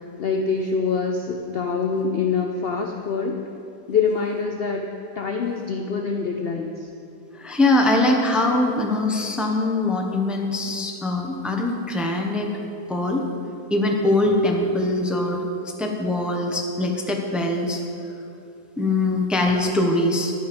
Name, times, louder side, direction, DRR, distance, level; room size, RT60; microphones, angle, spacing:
voice 1, 0.2-3.4 3.9-4.8 5.2-6.9, left 5 dB, 75° left, 3 dB, 0.5 m, -25 dB
voice 2, 7.3-12.6 12.9-13.2 13.7-15.4 15.8-17.8 18.8-20.3, left 2 dB, ahead, 1 dB, 0.6 m, -22 dB
11.0 x 9.1 x 5.2 m, 2.6 s
omnidirectional pair, 1.8 m